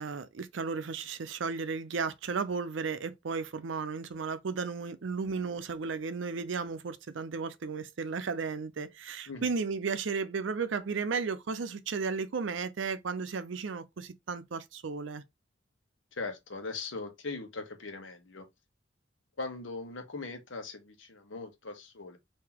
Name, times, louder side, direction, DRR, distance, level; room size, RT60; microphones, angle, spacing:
voice 1, 0.0-15.2, right 5 dB, 80° right, 0.5 m, -34 dB
voice 2, 16.1-18.5 19.4-22.2, left 3 dB, 90° left, 1.0 m, -40 dB
3.9 x 2.7 x 2.8 m
head